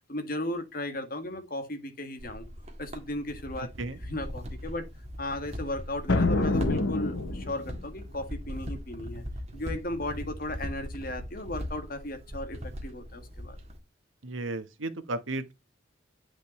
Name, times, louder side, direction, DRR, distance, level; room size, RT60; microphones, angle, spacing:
voice 1, 0.1-2.4 2.8-4.9 5.2-9.2 9.5-13.6, left 1 dB, 45° left, 1.8 m, -36 dB
sound 1, 2.2-13.8, equal, 35° right, 1.7 m, -40 dB
voice 2, 3.6-4.0 14.2-15.5, right 2 dB, 85° right, 1.2 m, -34 dB
sound 2, 6.1-7.8, left 2 dB, 80° left, 1.0 m, -26 dB
8.8 x 5.2 x 3.2 m
head